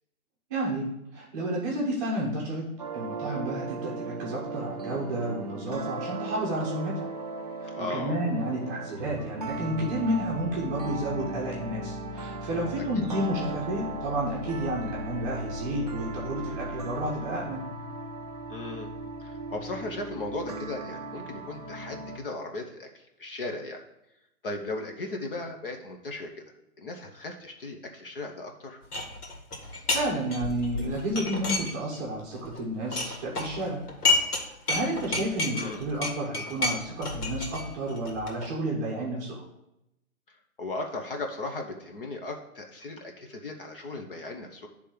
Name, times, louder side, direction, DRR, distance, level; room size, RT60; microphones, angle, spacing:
voice 1, 0.5-2.7 2.9-7.1 7.6-17.6 29.9-33.8 34.3-39.4, right 1 dB, 15° right, -4 dB, 0.8 m, -31 dB
sound 1, 2.8-22.2, right 2 dB, 30° right, 0.4 m, -37 dB
voice 2, 7.8-8.2 13.0-13.1 18.5-18.9 19.2-23.8 24.4-26.4 26.8-28.8 35.5-35.8 40.3-44.7, left 2 dB, 40° left, 3 dB, 0.7 m, -37 dB
sound 2, 28.9-30.1 30.3-32.1 32.4-34.4 34.7-38.5, left 3 dB, 85° left, 2.1 m, -30 dB
9.8 x 3.4 x 5.0 m, 0.87 s
hypercardioid pair, 155°, 45 cm